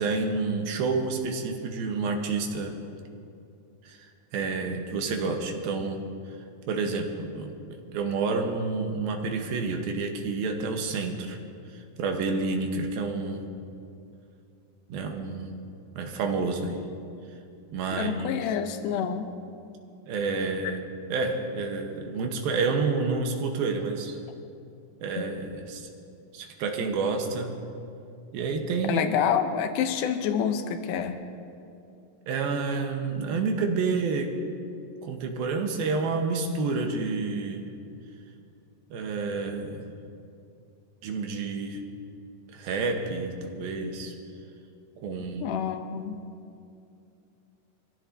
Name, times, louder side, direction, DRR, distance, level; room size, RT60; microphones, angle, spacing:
voice 1, 0.0-2.8 3.8-4.1 4.3-6.0 6.7-11.4 11.7-13.4 14.9-15.5 15.9-16.9 17.7-18.6 20.1-20.8 21.1-24.2 25.0-25.9 26.3-27.6 28.3-29.1 32.3-34.3 35.0-37.6 38.9-39.8 41.0-41.8 42.5-44.1 45.0-45.6, right 4 dB, 90° right, 3 dB, 3.0 m, -29 dB
voice 2, 18.0-19.3 25.2-25.3 28.9-31.2 45.4-46.2, left 8 dB, 75° left, 7 dB, 2.2 m, -28 dB
24.5 x 15.5 x 2.7 m, 2.6 s
omnidirectional pair, 4.2 m